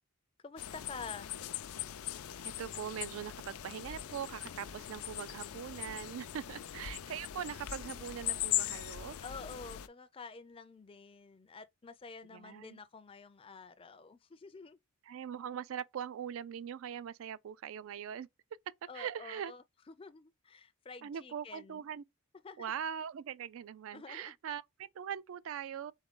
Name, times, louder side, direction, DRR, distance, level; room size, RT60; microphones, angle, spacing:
voice 1, 0.4-1.3 9.2-14.8 18.9-21.9 22.4-22.7 23.9-24.3, left 4 dB, 25° left, 0.4 m, -49 dB
sound 1, 0.6-9.9, left 12 dB, 85° left, 0.4 m, -40 dB
voice 2, 2.4-9.2 12.3-12.8 15.0-18.6 18.9-19.5 21.0-22.0 22.6-25.9, right 8 dB, 65° right, 0.3 m, -41 dB
3.9 x 3.6 x 3.7 m
head